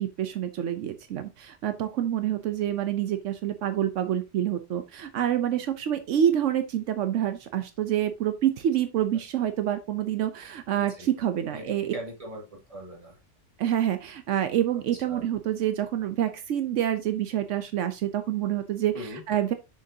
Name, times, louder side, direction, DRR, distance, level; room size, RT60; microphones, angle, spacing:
voice 1, 0.0-11.9 13.6-19.5, right 11 dB, 80° right, 9 dB, 1.0 m, -27 dB
voice 2, 10.7-11.1 11.5-13.2 15.1-15.3 18.9-19.2, right 1 dB, 30° right, 0 dB, 2.0 m, -40 dB
6.8 x 6.5 x 2.7 m, 0.25 s
omnidirectional pair, 1.3 m